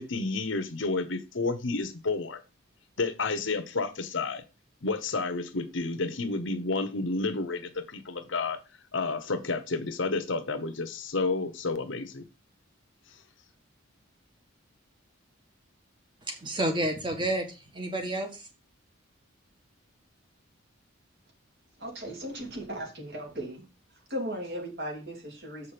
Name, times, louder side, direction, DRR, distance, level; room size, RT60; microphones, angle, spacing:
voice 1, 0.0-2.4 3.0-4.4 4.8-8.6 8.9-12.2, left 3 dB, 60° left, 1.0 m, -30 dB
voice 2, 16.3-18.5, right 1 dB, 25° right, 1.6 m, -30 dB
voice 3, 21.8-23.6 24.1-25.7, equal, 50° right, 2.9 m, -37 dB
7.3 x 5.9 x 5.2 m
head